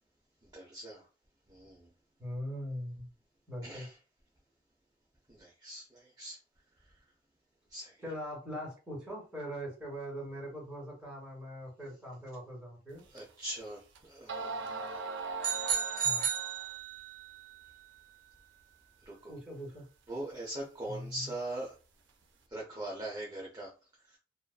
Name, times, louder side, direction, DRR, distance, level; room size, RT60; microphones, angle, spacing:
voice 1, 0.5-1.1 1.5-1.9 3.6-4.0 5.3-6.4 7.7-8.0 13.1-15.0 15.6-16.0 19.1-19.3 20.1-21.8 22.5-23.7 24.1-24.2, right 1 dB, 20° right, -4 dB, 0.5 m, -42 dB
voice 2, 2.2-3.1 3.5-3.9 8.0-13.0 16.0-16.2 19.3-19.8 20.8-21.3, equal, 5° right, -5 dB, 1.4 m, -41 dB
sound 1, 13.2-13.3 13.9-14.0 14.3-16.7, right 3 dB, 80° right, 0.4 m, -39 dB
sound 2, 15.4-17.2, right 8 dB, 50° right, 0.9 m, -32 dB
2.5 x 2.3 x 2.2 m, 0.34 s
head